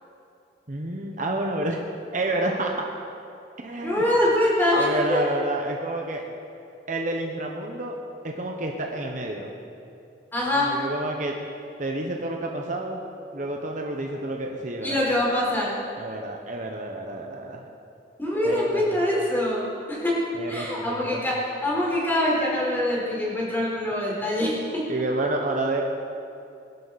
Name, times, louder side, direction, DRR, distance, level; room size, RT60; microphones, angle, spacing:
voice 1, 0.7-1.8 2.1-2.9 3.6-4.0 4.8-6.3 6.9-8.0 8.2-9.5 10.5-11.3 11.8-13.0 13.3-15.0 16.0-17.6 18.4-19.0 20.3-21.3 24.9-25.8, right 1 dB, 45° right, 1 dB, 1.1 m, -29 dB
voice 2, 3.8-5.2 10.3-10.7 14.8-15.7 18.2-20.2 20.5-24.8, left 1 dB, 10° left, -5 dB, 4.2 m, -24 dB
21.5 x 12.0 x 4.2 m, 2.5 s
head